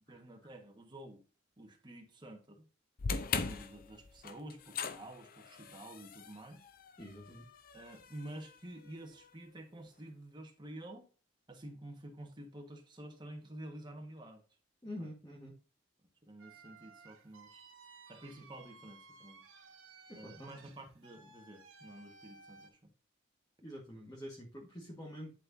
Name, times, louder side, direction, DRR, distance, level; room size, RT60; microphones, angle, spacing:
voice 1, 0.1-1.2 1.6-2.7 3.2-6.6 7.7-11.0 11.5-14.4 15.0-15.1 16.3-17.6 18.1-19.4 20.1-22.8, right 1 dB, 25° right, 3 dB, 1.4 m, -50 dB
sound 1, 3.0-9.3, left 5 dB, 45° left, 0.6 m, -41 dB
voice 2, 7.0-7.5 14.8-15.6 20.1-20.5 23.6-25.3, equal, 20° left, -2 dB, 1.4 m, -47 dB
sound 2, 16.4-22.7, right 4 dB, 85° right, 1.5 m, -57 dB
10.5 x 4.4 x 2.6 m, 0.36 s
head